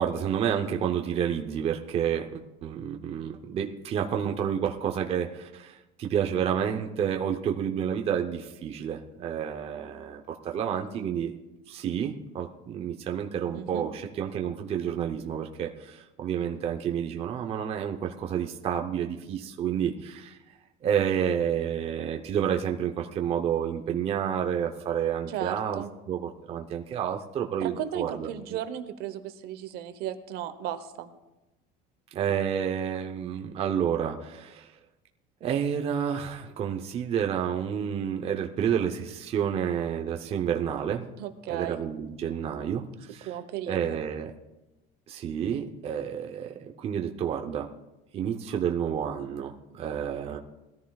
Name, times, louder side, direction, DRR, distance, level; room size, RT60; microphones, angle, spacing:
voice 1, 0.0-11.3 11.7-20.4 20.8-28.3 32.1-34.7 35.4-41.0 41.5-43.3 43.7-44.3 45.1-47.7 48.1-50.4, right 8 dB, 35° right, 3 dB, 0.8 m, -30 dB
voice 2, 13.5-13.9 25.3-25.9 27.6-31.1 41.2-41.8 43.2-44.0, right 10 dB, 60° right, 10 dB, 1.0 m, -35 dB
20.5 x 14.0 x 2.4 m, 1.0 s
cardioid pair, 170°, 18 cm